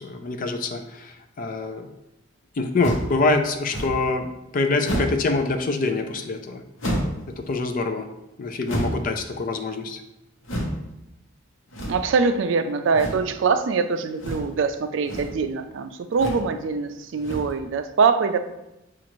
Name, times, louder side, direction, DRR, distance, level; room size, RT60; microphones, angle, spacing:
voice 1, 0.0-1.9 2.6-4.3 4.5-6.6 7.4-8.1 8.4-10.0, left 3 dB, 45° left, 6 dB, 0.4 m, -25 dB
sound 1, 2.8-3.2 3.7-4.1 4.8-5.3 6.8-7.2 8.7-9.1 10.4-10.8 11.7-12.1 12.9-13.3 14.2-14.6 14.9-15.4 16.1-16.5 17.2-17.6, equal, 80° left, 0.9 m, -29 dB
voice 2, 11.9-18.4, right 5 dB, 70° right, 9 dB, 0.4 m, -23 dB
6.1 x 2.5 x 3.0 m, 0.92 s
head